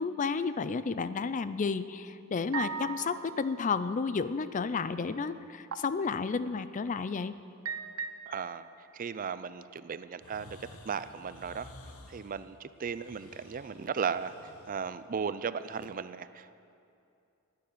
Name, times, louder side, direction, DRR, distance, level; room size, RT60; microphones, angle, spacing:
voice 1, 0.0-7.4, left 5 dB, 35° left, 14 dB, 0.4 m, -32 dB
sound 1, 2.5-4.0 5.7-6.0 6.6-6.9 7.6-8.7, right 7 dB, 75° right, 0.7 m, -38 dB
voice 2, 8.3-8.7 8.9-11.7 12.1-14.3 14.7-16.6, right 6 dB, 40° right, 14 dB, 0.4 m, -36 dB
sound 2, 10.2-15.9, left 2 dB, 85° left, 1.3 m, -53 dB
12.0 x 9.3 x 9.9 m, 2.6 s
head